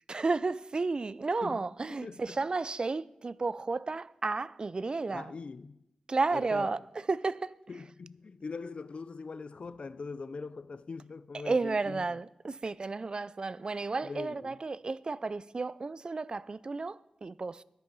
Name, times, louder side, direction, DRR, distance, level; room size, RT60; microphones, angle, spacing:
voice 1, 0.1-5.3 6.1-6.8 7.1-7.5 11.4-17.6, right 3 dB, 40° right, 0.4 m, -32 dB
voice 2, 2.0-2.4 5.1-5.8 6.3-6.8 7.7-12.2 14.0-14.6, left 4 dB, 55° left, 0.5 m, -42 dB
13.5 x 10.5 x 4.1 m
wide cardioid pair, 90°, 2 cm